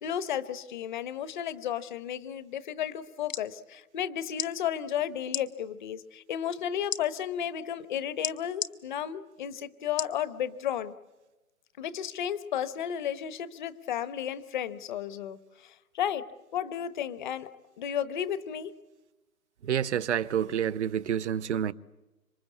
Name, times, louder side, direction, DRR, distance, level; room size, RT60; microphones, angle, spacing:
voice 1, 0.0-10.9 11.8-16.2 16.5-17.5 17.8-18.7, left 9 dB, 35° left, 1.1 m, -33 dB
sound 1, 3.0-3.5 4.3-4.5 5.3-5.5 6.9-7.0 8.2-8.7 10.0-10.2 10.8-10.9, left 8 dB, 60° left, 1.7 m, -33 dB
voice 2, 19.6-21.7, right 9 dB, 55° right, 0.9 m, -28 dB
27.0 x 24.0 x 8.4 m
hypercardioid pair, 145°, 43 cm